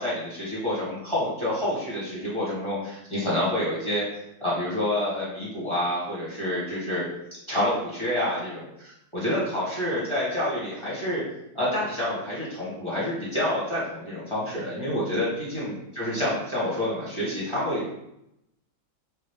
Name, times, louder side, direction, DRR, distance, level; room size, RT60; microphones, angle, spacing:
voice 1, 0.0-7.0 7.5-11.2 11.5-17.9, left 1 dB, 15° left, -9 dB, 1.4 m, -28 dB
4.0 x 3.4 x 3.6 m, 0.82 s
omnidirectional pair, 2.0 m